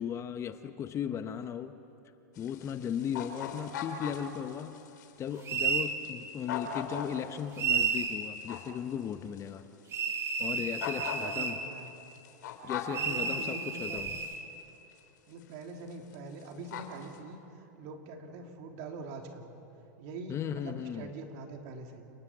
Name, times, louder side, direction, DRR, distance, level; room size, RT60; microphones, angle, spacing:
voice 1, 0.0-1.7 2.4-4.7 5.2-9.7 10.4-11.6 12.6-14.1 20.3-21.1, left 8 dB, 30° left, 10 dB, 1.0 m, -36 dB
sound 1, 2.4-9.5 9.9-10.0 10.8-13.1 14.2-14.3 14.9-15.0 15.4-15.6 15.9-16.2 16.4-17.2, left 7 dB, 75° left, 3.3 m, -40 dB
sound 2, 5.5-5.9 7.6-8.2 9.9-11.6 12.9-14.3, right 6 dB, 25° right, 2.3 m, -31 dB
voice 2, 11.2-11.9 12.9-14.1 15.3-19.5 20.0-22.1, right 3 dB, 55° right, 3 dB, 3.1 m, -44 dB
29.5 x 19.0 x 7.4 m, 2.8 s
hypercardioid pair, 120°, 10 cm